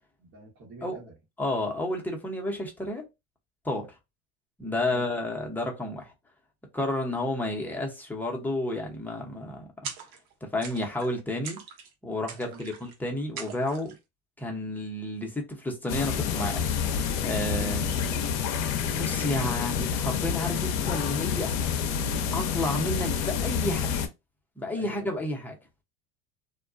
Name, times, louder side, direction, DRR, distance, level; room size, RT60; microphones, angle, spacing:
voice 1, 0.2-1.1 4.9-5.1 12.4-12.6 17.5-17.8 24.7-25.1, right 2 dB, 40° right, 1.1 m, -46 dB
voice 2, 1.4-3.0 3.6-3.9 4.6-6.1 6.7-9.7 10.4-11.6 12.0-13.9 14.4-16.6 17.2-18.1 18.9-21.5 22.3-23.9 24.6-25.6, left 1 dB, 5° left, 0.8 m, -31 dB
sound 1, 9.8-10.3 10.6-11.1 11.4-11.9 12.3-12.9 13.4-14.0, right 6 dB, 65° right, 0.8 m, -41 dB
sound 2, 15.9-24.1, left 7 dB, 60° left, 0.6 m, -28 dB
2.3 x 2.1 x 2.5 m
hypercardioid pair, 90°, 31 cm